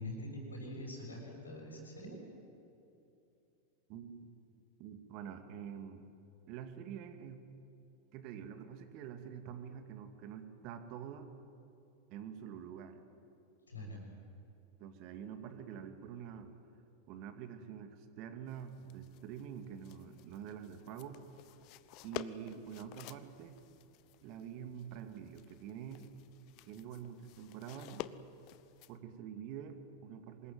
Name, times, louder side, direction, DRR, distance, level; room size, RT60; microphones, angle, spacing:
voice 1, 0.0-2.2 13.7-14.0, left 1 dB, 75° left, 1 dB, 6.7 m, -44 dB
voice 2, 3.9-4.3 4.8-6.1 6.5-7.5 8.1-11.3 12.1-13.0 14.8-16.5 17.1-21.2 22.0-23.6 24.2-26.1 26.7-28.1 28.9-30.5, right 8 dB, 40° right, 8 dB, 2.3 m, -46 dB
sound 1, 18.5-29.0, left 14 dB, 40° left, 0.9 m, -51 dB
25.5 x 21.0 x 9.4 m, 2.8 s
figure-of-eight pair, 90°, 0 cm